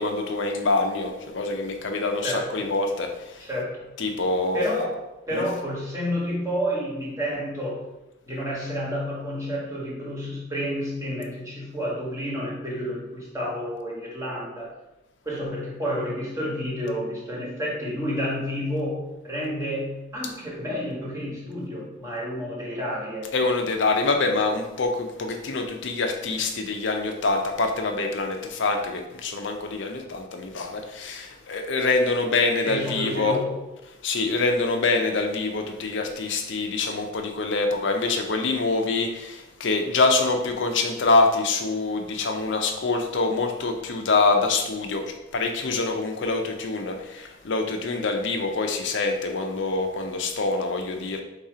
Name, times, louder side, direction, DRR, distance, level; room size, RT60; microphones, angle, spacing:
voice 1, 0.0-3.5 4.0-4.6 5.3-5.4 23.3-33.4 34.0-51.2, left 3 dB, 65° left, 4 dB, 0.6 m, -25 dB
voice 2, 2.2-2.7 3.5-3.9 4.5-7.9 8.3-14.7 15.2-23.3 32.6-33.6, equal, 15° right, -5 dB, 1.2 m, -30 dB
4.0 x 2.8 x 4.8 m, 0.97 s
head